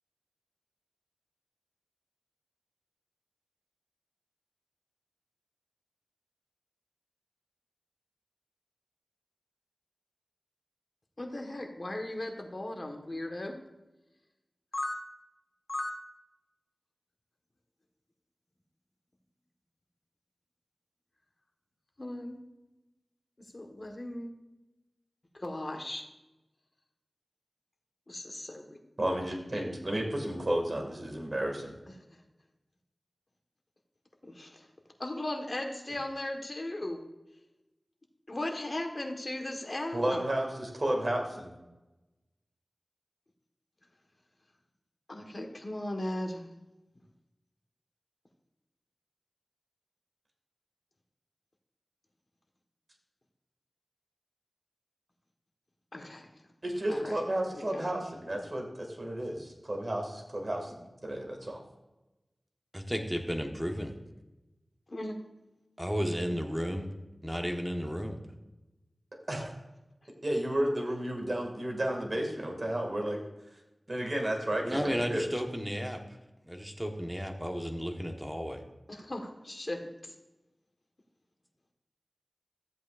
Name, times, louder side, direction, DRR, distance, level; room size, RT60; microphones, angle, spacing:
voice 1, 11.2-13.6 14.7-14.9 15.7-15.9 22.0-22.4 23.5-24.3 25.3-26.0 28.1-28.8 34.2-34.7 35.0-37.0 38.3-40.2 45.1-46.4 55.9-56.3 56.9-57.2 57.5-57.9 64.9-65.2 78.9-80.1, left 1 dB, 45° left, 3 dB, 1.4 m, -37 dB
voice 2, 29.0-31.7 39.9-41.5 56.6-61.6 69.3-69.5 70.2-73.2 73.9-75.2, right 1 dB, 50° right, 1 dB, 2.1 m, -32 dB
voice 3, 62.7-63.9 65.8-66.9 67.2-68.2 74.6-76.2 76.4-78.6, equal, 5° right, 3 dB, 1.2 m, -33 dB
13.5 x 7.9 x 2.5 m, 1.0 s
wide cardioid pair, 55°, 0 cm